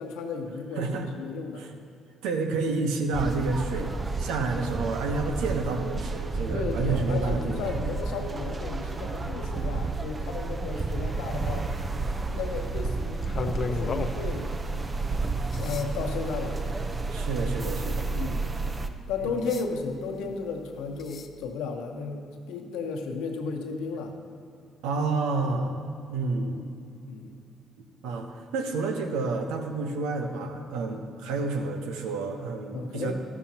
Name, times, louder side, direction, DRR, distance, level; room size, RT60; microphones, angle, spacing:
voice 1, 0.0-1.7 6.5-11.7 12.3-14.5 15.6-16.7 18.1-18.5 19.1-24.1 27.1-27.3 28.0-28.2 32.7-33.1, left 4 dB, 75° left, 4 dB, 1.0 m, -34 dB
voice 2, 0.8-1.1 1.6-1.7 2.2-3.9 4.2-7.7 17.1-18.1 19.2-19.3 24.8-25.8 26.1-26.6 28.0-33.1, right 3 dB, 75° right, 5 dB, 1.0 m, -29 dB
sound 1, 3.1-18.9, right 3 dB, 30° right, 0.8 m, -31 dB
sound 2, 12.6-21.4, left 4 dB, 50° left, 0.7 m, -40 dB
13.5 x 12.5 x 2.9 m, 2.6 s
hypercardioid pair, 55°, 0 cm